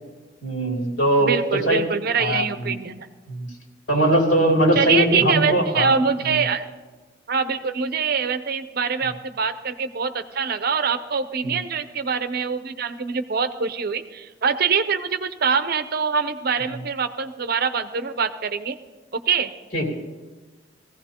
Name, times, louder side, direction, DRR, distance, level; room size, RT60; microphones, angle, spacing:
voice 1, 0.4-1.8 2.2-2.7 3.3-3.5 3.9-5.9 6.2-6.4 11.4-11.6 16.6-16.8 19.7-19.8, right 1 dB, 65° left, -2 dB, 3.0 m, -21 dB
voice 2, 1.2-3.1 4.7-6.6 7.3-18.8 19.1-19.5, right 6 dB, 55° right, 9 dB, 0.6 m, -24 dB
20.0 x 15.5 x 2.9 m, 1.3 s
head